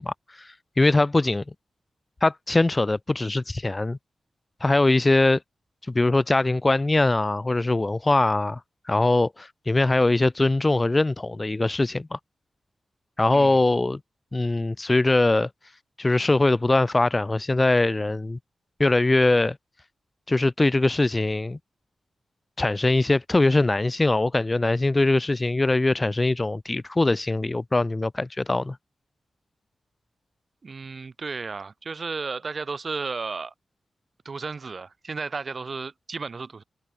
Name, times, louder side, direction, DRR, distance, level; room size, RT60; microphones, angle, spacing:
voice 1, 0.0-1.4 2.2-4.0 4.6-5.4 5.9-8.6 8.9-12.2 13.2-14.0 14.3-15.5 16.0-18.4 18.8-19.6 20.3-21.6 22.6-28.8, left 2 dB, 25° left, 0.5 m, -22 dB
voice 2, 30.6-33.5 34.2-36.6, right 4 dB, 45° right, 0.9 m, -33 dB
wide cardioid pair, 110°, 0 cm